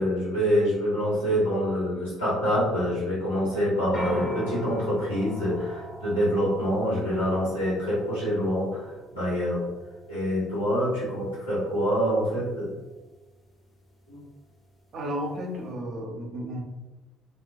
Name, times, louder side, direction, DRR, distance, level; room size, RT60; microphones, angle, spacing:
voice 1, 0.0-9.6 10.1-12.7 14.1-14.2, equal, 85° left, -11 dB, 1.1 m, -26 dB
sound 1, 3.9-15.7, right 1 dB, 20° left, 0.6 m, -42 dB
voice 2, 14.9-16.6, equal, 50° right, 1 dB, 0.5 m, -33 dB
2.2 x 2.1 x 2.6 m, 1.1 s
figure-of-eight pair, 55°, 0 cm